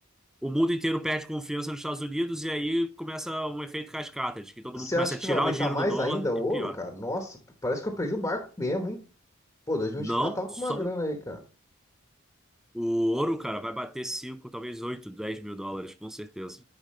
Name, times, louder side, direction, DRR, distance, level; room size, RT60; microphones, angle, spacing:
voice 1, 0.4-6.3 6.5-6.8 10.0-10.4 10.7-10.9 12.7-16.6, equal, ahead, 0.4 m, -31 dB
voice 2, 4.7-7.4 7.6-9.0 9.7-11.4, left 1 dB, 15° left, 1.1 m, -30 dB
10.0 x 5.0 x 3.1 m
head